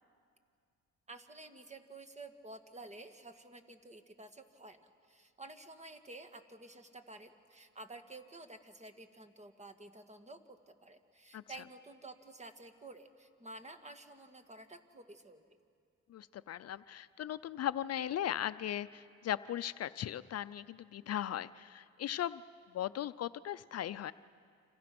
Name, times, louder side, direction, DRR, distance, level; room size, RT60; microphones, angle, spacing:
voice 1, 1.1-15.4, right 2 dB, 20° right, 7 dB, 1.9 m, -51 dB
voice 2, 16.1-22.4 22.7-24.1, left 11 dB, 55° left, 14 dB, 0.6 m, -38 dB
29.5 x 26.5 x 6.1 m, 2.3 s
cardioid pair, 90°, 30 cm